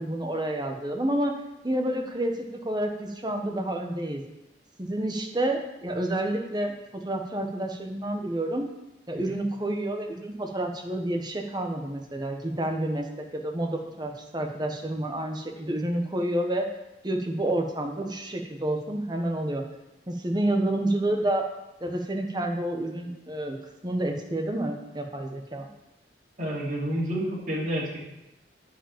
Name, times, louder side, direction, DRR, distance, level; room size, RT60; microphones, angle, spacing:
voice 1, 0.0-1.3 1.6-4.2 4.8-8.7 9.1-16.7 17.0-19.6 20.1-21.5 21.8-23.6 23.8-25.7, right 1 dB, 25° right, 3 dB, 1.1 m, -29 dB
voice 2, 26.4-28.0, equal, 45° right, -6 dB, 3.1 m, -29 dB
9.8 x 5.2 x 7.2 m, 0.93 s
head